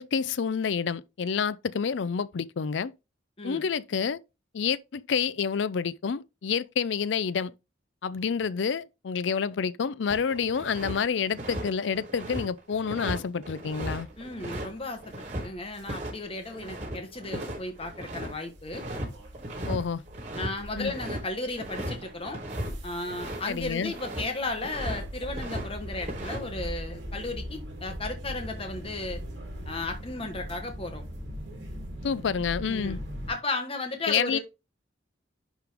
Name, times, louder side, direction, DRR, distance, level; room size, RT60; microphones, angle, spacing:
voice 1, 0.0-2.9 3.4-4.2 4.5-7.5 8.0-14.1 19.7-20.0 20.8-20.9 23.5-23.9 32.0-33.0 34.1-34.4, left 6 dB, 75° left, 0.4 m, -28 dB
voice 2, 3.4-3.7 14.2-18.9 20.4-22.4 22.8-29.2 29.6-31.0 32.7-33.0 33.3-34.4, left 2 dB, 30° left, 1.3 m, -35 dB
sound 1, 10.1-11.0 11.3-15.5 15.9-16.1 16.4-18.3 18.7-19.1 19.3-19.8 20.1-23.5 23.8-24.3 24.6-25.7 25.9-26.4, right 1 dB, 40° right, 3.4 m, -36 dB
sound 2, 13.7-33.3, equal, 70° right, 2.6 m, -41 dB
10.5 x 3.8 x 3.4 m
head